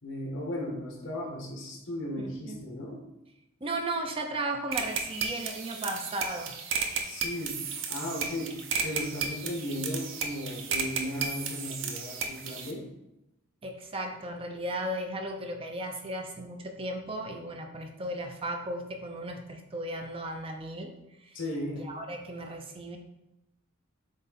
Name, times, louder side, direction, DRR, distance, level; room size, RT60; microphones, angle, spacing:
voice 1, 0.0-3.0 7.0-12.8 21.3-21.8, left 1 dB, 60° left, -2 dB, 1.7 m, -36 dB
voice 2, 2.2-2.6 3.6-6.6 13.6-21.4 21.8-23.0, right 1 dB, 25° right, 4 dB, 0.5 m, -35 dB
sound 1, 4.7-12.7, right 6 dB, 60° right, 0.8 m, -34 dB
7.7 x 3.6 x 4.1 m, 0.90 s
head